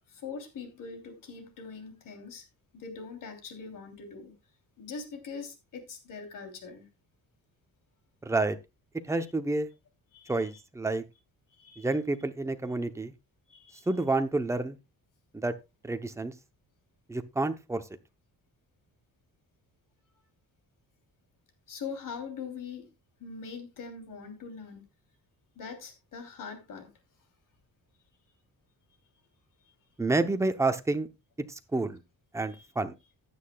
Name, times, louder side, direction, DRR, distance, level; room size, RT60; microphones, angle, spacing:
voice 1, 0.1-2.4 2.7-4.3 4.8-6.9 10.1-10.5 11.6-11.9 13.5-13.9 21.7-22.9 23.2-24.8 25.5-26.9 32.5-32.7, left 5 dB, 60° left, 3.2 m, -42 dB
voice 2, 8.2-8.6 9.1-9.7 10.3-11.0 11.8-13.1 13.9-14.8 15.3-15.5 15.8-16.3 17.1-17.8 30.0-31.1 31.5-32.0 32.3-32.9, right 2 dB, 10° right, 0.8 m, -29 dB
15.5 x 9.7 x 2.3 m
wide cardioid pair, 170°, 36 cm